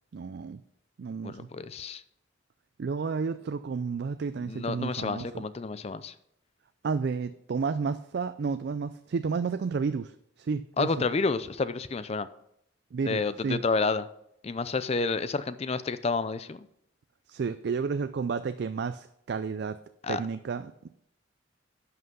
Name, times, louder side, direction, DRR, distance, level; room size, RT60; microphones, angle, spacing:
voice 1, 0.1-0.6 1.0-1.5 2.8-5.4 6.8-11.0 12.9-13.6 17.3-19.8 20.1-20.9, right 5 dB, 55° right, 12 dB, 0.4 m, -31 dB
voice 2, 1.2-2.0 4.4-6.1 10.8-12.3 13.0-14.1 14.4-16.7 20.0-20.2, left 4 dB, 30° left, 14 dB, 0.4 m, -30 dB
11.0 x 5.8 x 5.4 m, 0.76 s
head